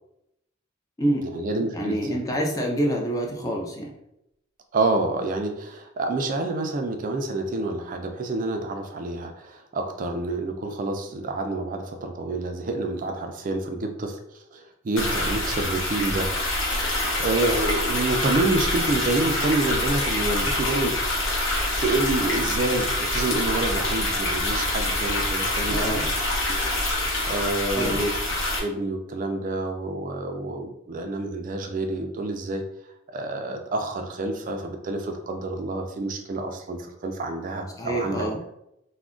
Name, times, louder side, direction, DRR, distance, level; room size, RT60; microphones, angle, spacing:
voice 1, 1.2-2.2 4.7-20.9 21.8-26.0 26.5-26.6 27.3-28.1 28.6-32.6 33.1-38.3, right 2 dB, 45° right, 4 dB, 0.3 m, -28 dB
voice 2, 1.7-3.9 25.7-26.0 27.7-28.0 37.8-38.4, right 1 dB, 20° left, 0 dB, 0.4 m, -26 dB
sound 1, 15.0-28.6, left 1 dB, 80° left, 0.8 m, -26 dB
2.3 x 2.1 x 3.6 m, 0.81 s
head